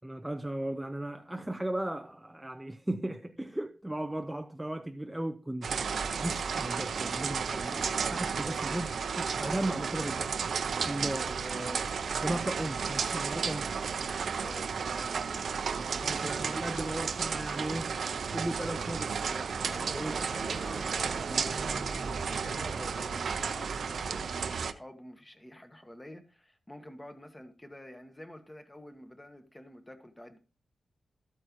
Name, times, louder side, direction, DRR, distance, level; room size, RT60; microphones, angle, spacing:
voice 1, 0.0-11.9 12.2-14.1 15.9-17.9 18.3-20.2, right 1 dB, 5° right, 0.5 m, -36 dB
sound 1, 5.6-24.7, right 6 dB, 65° right, 0.7 m, -33 dB
voice 2, 14.3-14.7 19.5-30.4, left 1 dB, 10° left, 1.3 m, -48 dB
sound 2, 19.9-23.0, right 2 dB, 35° right, 1.2 m, -47 dB
13.5 x 8.8 x 3.1 m
wide cardioid pair, 145°, 0 cm